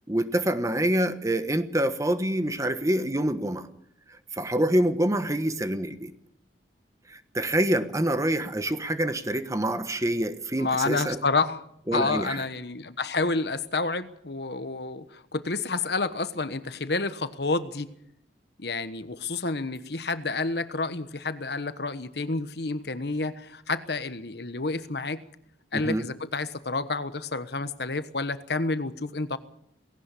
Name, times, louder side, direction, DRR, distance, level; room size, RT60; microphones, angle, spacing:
voice 1, 0.1-3.7 4.3-6.1 7.1-11.2 11.9-12.4 25.7-26.0, right 1 dB, 20° right, 10 dB, 1.2 m, -26 dB
voice 2, 10.6-11.6 11.9-17.9 18.6-25.2 25.7-29.4, left 3 dB, 65° left, 12 dB, 1.3 m, -29 dB
18.5 x 17.5 x 8.4 m, 0.71 s
head